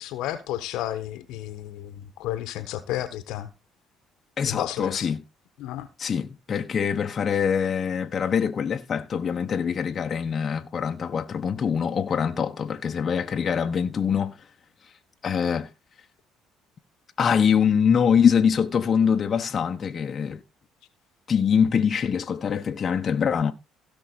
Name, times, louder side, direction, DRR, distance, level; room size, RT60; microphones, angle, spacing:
voice 1, 0.0-3.5 4.4-5.1 5.6-5.9, left 13 dB, 70° left, 1.4 m, -32 dB
voice 2, 4.4-5.2 6.0-14.4 15.2-15.7 17.2-20.4 21.3-23.5, left 7 dB, 45° left, 1.2 m, -24 dB
17.0 x 5.9 x 4.1 m
hypercardioid pair, 55°, 0 cm